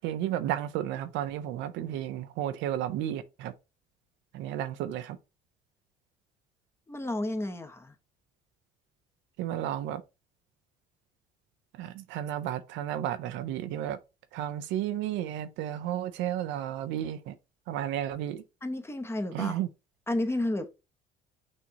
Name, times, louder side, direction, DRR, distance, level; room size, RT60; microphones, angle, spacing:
voice 1, 0.0-3.5 4.3-5.2 9.4-10.0 11.7-14.0 14.3-17.3 17.7-18.4 19.3-19.7, right 11 dB, 75° right, 0.5 m, -32 dB
voice 2, 6.9-7.9 18.6-19.5 20.1-20.7, left 1 dB, 15° left, 0.9 m, -31 dB
6.2 x 2.7 x 2.8 m
supercardioid pair, 70°, 19 cm